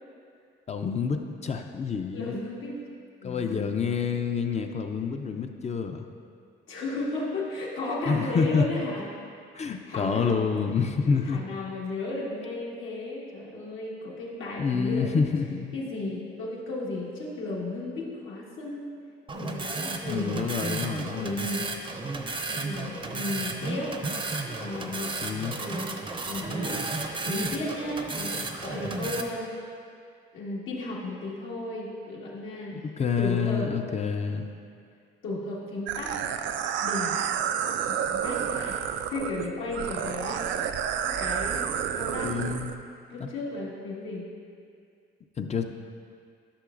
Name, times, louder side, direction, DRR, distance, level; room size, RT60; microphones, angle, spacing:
voice 1, 0.7-2.4 3.2-6.0 8.1-8.7 9.5-11.4 14.6-15.8 20.0-21.5 25.2-25.6 32.7-34.5 42.2-42.8 43.2-43.3 45.4-45.6, left 5 dB, 35° left, 5 dB, 0.5 m, -28 dB
voice 2, 2.1-2.7 3.2-3.7 6.7-9.0 9.6-10.5 10.8-15.1 15.7-18.9 19.3-20.4 21.1-21.6 22.5-23.9 24.6-25.1 25.5-26.0 26.3-26.8 27.2-29.5 30.3-32.9 33.2-33.7 34.2-34.3 35.2-36.2 36.8-37.2 37.9-38.8 39.1-40.5 40.9-42.3 43.1-44.2, left 2 dB, 80° left, -5 dB, 1.7 m, -34 dB
sound 1, 19.3-29.2, right 3 dB, 25° right, 0.6 m, -33 dB
sound 2, 35.9-42.7, right 8 dB, 70° right, 0.4 m, -30 dB
11.5 x 6.0 x 2.5 m, 2.3 s
cardioid pair, 90°, 20 cm